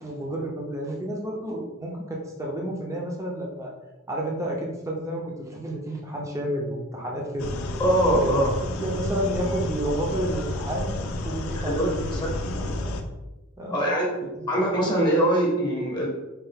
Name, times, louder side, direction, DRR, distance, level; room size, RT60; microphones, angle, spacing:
voice 1, 0.0-3.7 4.1-7.5 8.2-13.0 13.6-13.8 14.4-14.5, right 1 dB, 15° right, -1 dB, 0.5 m, -31 dB
sound 1, 7.4-13.0, left 2 dB, 85° left, 0.4 m, -31 dB
voice 2, 7.8-8.5 11.5-12.3 13.7-14.2 14.5-16.1, right 1 dB, 20° left, -2 dB, 0.7 m, -23 dB
4.6 x 2.4 x 3.4 m, 1.1 s
head